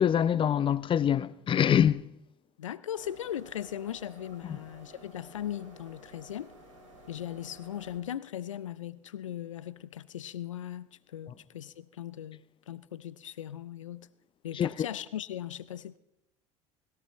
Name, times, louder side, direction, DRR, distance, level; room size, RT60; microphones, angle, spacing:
voice 1, 0.0-2.1 4.5-4.6 11.3-11.4 14.5-14.9, left 9 dB, 35° left, 0.5 m, -25 dB
voice 2, 2.6-6.5 7.1-12.4 12.7-14.1 14.4-16.0, left 11 dB, 85° left, 0.5 m, -38 dB
sound 1, 2.9-8.0, right 1 dB, 85° right, 3.0 m, -53 dB
20.5 x 17.0 x 3.1 m
hypercardioid pair, 70°, 16 cm